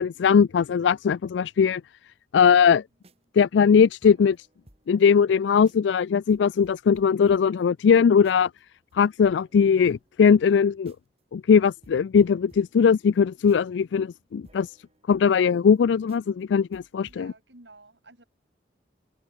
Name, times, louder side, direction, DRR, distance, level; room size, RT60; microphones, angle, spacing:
voice 1, 0.0-1.8 2.3-2.8 3.4-4.5 4.9-8.5 8.9-10.9 11.3-14.7 15.1-17.3, left 6 dB, 80° left, 0.4 m, -20 dB
sound 1, 2.9-5.0 5.3-5.4 5.6-6.0 6.3-8.6 8.9-9.0 9.2-11.2 11.5-11.6 11.8-15.8 16.1-16.4 16.7-17.3, right 1 dB, 35° right, 3.5 m, -58 dB
voice 2, 17.0-18.2, right 2 dB, 75° right, 4.1 m, -51 dB
head